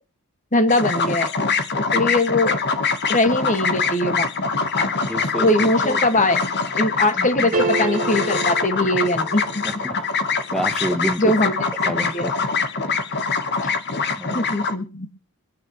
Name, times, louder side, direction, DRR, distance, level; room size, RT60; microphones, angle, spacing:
voice 1, 0.5-1.3 1.9-2.6 3.1-4.3 4.8-4.9 5.4-6.4 6.8-9.6 11.2-11.5 12.1-12.2 14.3-15.1, left 2 dB, 35° left, 9 dB, 1.9 m, -21 dB
sound 1, 0.7-14.7, left 4 dB, 50° left, 1.4 m, -24 dB
voice 2, 5.1-6.0 7.2-7.5 9.6-10.0 10.5-11.4 11.8-12.3 14.1-14.5, equal, ahead, 11 dB, 1.1 m, -29 dB
sound 2, 7.5-9.8, right 3 dB, 40° right, 2.7 m, -27 dB
25.0 x 9.0 x 3.1 m, 0.35 s
head